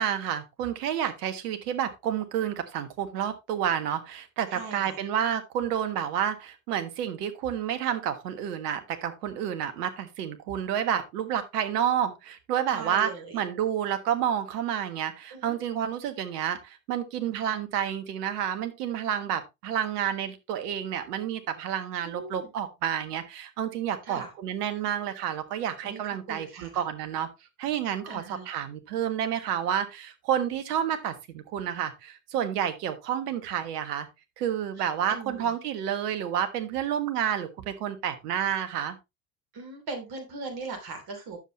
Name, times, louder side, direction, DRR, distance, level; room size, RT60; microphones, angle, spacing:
voice 1, 0.0-27.3 27.6-34.1 34.4-39.0, right 9 dB, 70° right, 9 dB, 1.5 m, -30 dB
voice 2, 4.5-5.0 12.7-13.4 15.3-15.6 22.0-22.5 24.1-24.3 25.8-26.0 26.3-26.8 28.1-28.5 34.8-35.5 39.5-41.4, right 4 dB, 50° right, 5 dB, 3.1 m, -39 dB
9.7 x 7.3 x 2.9 m, 0.22 s
figure-of-eight pair, 60°, 48 cm